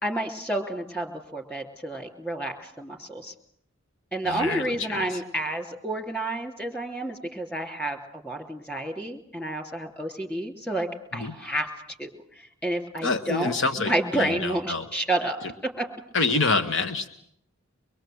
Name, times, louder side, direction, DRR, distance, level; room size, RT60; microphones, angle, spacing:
voice 1, 0.0-3.3 4.1-11.7 12.0-12.1 12.4-15.9, right 1 dB, 10° left, 5 dB, 3.0 m, -30 dB
voice 2, 4.2-5.2 11.1-11.3 13.0-14.8 16.1-17.1, left 3 dB, 70° left, 7 dB, 1.2 m, -27 dB
24.5 x 22.0 x 7.8 m, 0.69 s
head